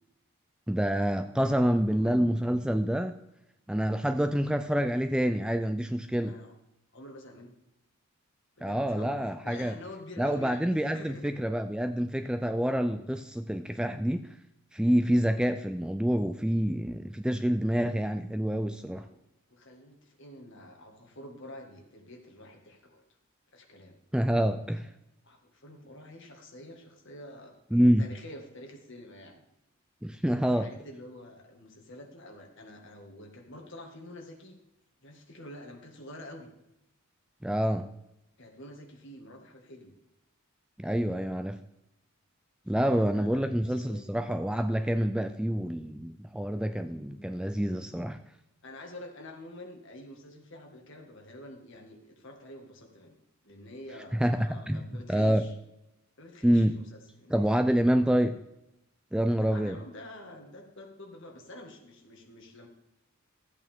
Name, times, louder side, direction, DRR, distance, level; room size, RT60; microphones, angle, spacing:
voice 1, 0.7-3.1 3.7-6.3 8.6-9.8 10.2-14.3 14.7-19.1 24.1-24.9 27.7-28.1 30.0-30.7 37.4-37.9 40.8-41.6 42.7-48.2 54.2-54.8 55.1-55.4 56.4-56.8 57.3-58.4 59.1-59.8, equal, 5° right, 9 dB, 0.3 m, -27 dB
voice 2, 1.4-2.4 6.3-6.5 6.9-7.6 8.6-11.3 18.9-19.2 19.5-23.0 23.5-24.0 25.2-29.4 30.2-34.6 35.0-36.5 38.4-40.0 42.7-44.4 46.9-47.6 48.6-53.2 53.4-55.5 56.2-57.5 59.4-62.7, left 1 dB, 55° left, 2 dB, 1.8 m, -48 dB
13.5 x 8.4 x 3.6 m, 0.86 s
head